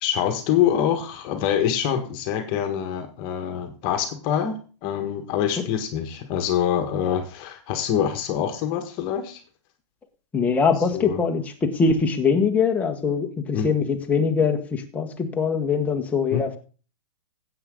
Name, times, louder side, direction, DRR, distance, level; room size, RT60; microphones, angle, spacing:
voice 1, 0.0-9.4 10.9-11.2 13.5-13.7 16.3-16.4, left 9 dB, 30° left, 6 dB, 1.5 m, -25 dB
voice 2, 10.3-16.6, left 5 dB, 10° left, 2 dB, 1.3 m, -22 dB
14.5 x 8.2 x 3.8 m, 0.37 s
hypercardioid pair, 150°, 15 cm